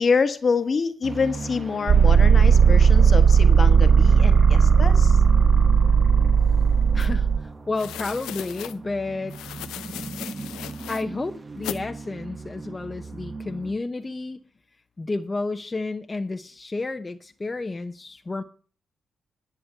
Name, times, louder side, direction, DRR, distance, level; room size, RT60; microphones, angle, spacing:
voice 1, 0.0-5.2, left 5 dB, 50° left, 1.3 m, -26 dB
sound 1, 1.0-13.7, right 4 dB, 35° right, 1.5 m, -37 dB
sound 2, 1.9-7.4, right 6 dB, 60° right, 0.5 m, -16 dB
voice 2, 6.9-9.3 10.9-14.4 15.0-18.4, left 3 dB, 30° left, 1.0 m, -31 dB
sound 3, 7.0-7.1 7.7-8.8 9.3-11.0 11.6-11.8, left 13 dB, 85° left, 0.6 m, -37 dB
11.0 x 7.3 x 8.0 m
hypercardioid pair, 40°, 0 cm